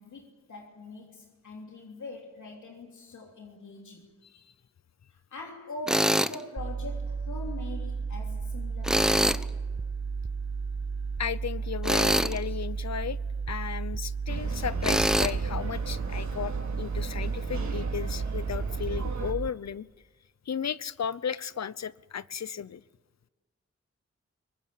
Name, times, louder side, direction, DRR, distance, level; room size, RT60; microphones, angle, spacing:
voice 1, 0.0-4.1 5.1-9.5, left 3 dB, 85° left, 1 dB, 3.1 m, -43 dB
Tools, 5.9-6.4 8.8-9.4 11.8-12.4 14.8-15.3, equal, ahead, 1.0 m, -24 dB
sound 1, 6.6-19.5, right 5 dB, 25° right, 0.6 m, -33 dB
voice 2, 11.2-13.2 13.5-19.9 20.5-22.8, left 7 dB, 65° left, 19 dB, 0.8 m, -34 dB
sound 2, 14.3-19.3, right 4 dB, 75° right, 4.2 m, -36 dB
23.5 x 19.0 x 8.5 m, 1.3 s
cardioid pair, 45°, 29 cm